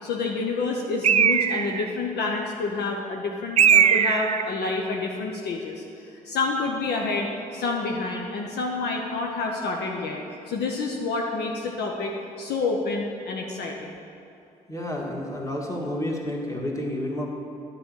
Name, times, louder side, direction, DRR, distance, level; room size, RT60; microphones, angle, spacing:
voice 1, 0.0-5.8 6.2-10.2 10.5-14.0, left 3 dB, 60° left, 0 dB, 0.8 m, -28 dB
Bird, 1.0-1.9 3.6-4.5, right 8 dB, 35° right, 0.4 m, -19 dB
voice 2, 14.7-17.3, left 1 dB, 15° left, -2 dB, 1.9 m, -30 dB
11.0 x 4.1 x 6.3 m, 2.7 s
hypercardioid pair, 40°, 19 cm